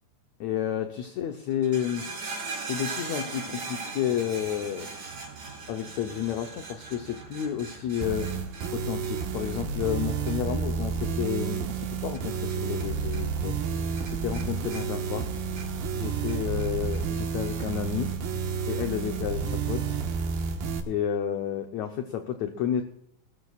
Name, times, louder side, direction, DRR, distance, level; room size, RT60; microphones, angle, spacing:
voice 1, 0.4-2.1 2.6-4.9 5.7-8.3 8.7-13.6 14.0-15.4 15.9-18.1 18.7-19.9 20.9-22.8, left 9 dB, 70° left, 6 dB, 1.7 m, -31 dB
sound 1, 1.5-12.9 13.1-13.7 14.0-15.9 16.3-17.0 17.7-17.8, right 4 dB, 60° right, 6.1 m, -40 dB
sound 2, 8.0-20.8, right 6 dB, 80° right, 3.2 m, -30 dB
21.5 x 14.0 x 2.4 m, 0.74 s
omnidirectional pair, 4.1 m